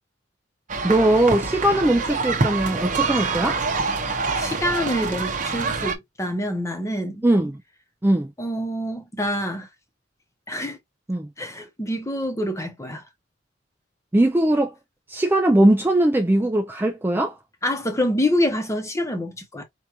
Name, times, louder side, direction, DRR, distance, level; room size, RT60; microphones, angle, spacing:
sound 1, 0.7-6.0, right 4 dB, 40° right, 0.8 m, -26 dB
voice 1, 0.8-3.6 7.2-7.6 8.0-8.3 11.1-11.3 14.1-14.7 15.1-17.4, right 1 dB, 10° right, 0.4 m, -20 dB
voice 2, 4.4-7.3 8.4-9.7 10.5-10.8 11.4-13.0 17.6-19.6, left 1 dB, 15° left, 0.8 m, -26 dB
4.7 x 2.4 x 2.9 m
head